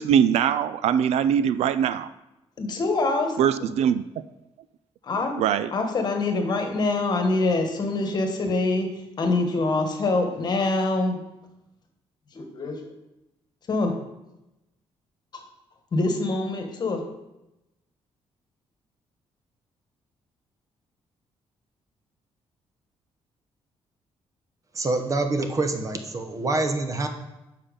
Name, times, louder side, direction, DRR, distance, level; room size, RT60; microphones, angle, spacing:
voice 1, 0.0-2.1 3.4-4.0 5.4-5.7, right 8 dB, 80° right, 14 dB, 0.4 m, -22 dB
voice 2, 2.6-3.4 5.0-5.3 5.7-8.9 9.2-11.2 12.3-12.8 13.7-13.9 15.9-17.0, left 2 dB, 40° left, 4 dB, 1.3 m, -24 dB
voice 3, 24.7-27.1, right 2 dB, 30° right, 6 dB, 0.8 m, -26 dB
6.9 x 5.7 x 5.2 m, 0.93 s
cardioid pair, 140°, 11 cm